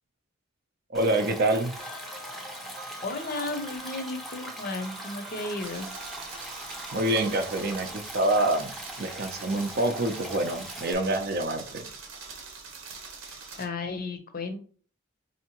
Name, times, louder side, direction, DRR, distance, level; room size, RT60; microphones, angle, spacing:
Stream, 0.9-10.9, right 1 dB, ahead, 0.5 m, -41 dB
voice 1, 0.9-1.7 6.9-8.7 9.0-11.9, right 1 dB, 50° right, 6 dB, 0.5 m, -26 dB
sound 1, 1.8-8.6, right 1 dB, 25° right, 0.9 m, -46 dB
voice 2, 2.6-5.9 13.2-14.6, left 3 dB, 45° left, 7 dB, 0.6 m, -34 dB
sound 2, 5.6-13.7, right 5 dB, 75° right, 0.8 m, -43 dB
4.3 x 2.8 x 2.9 m, 0.43 s
head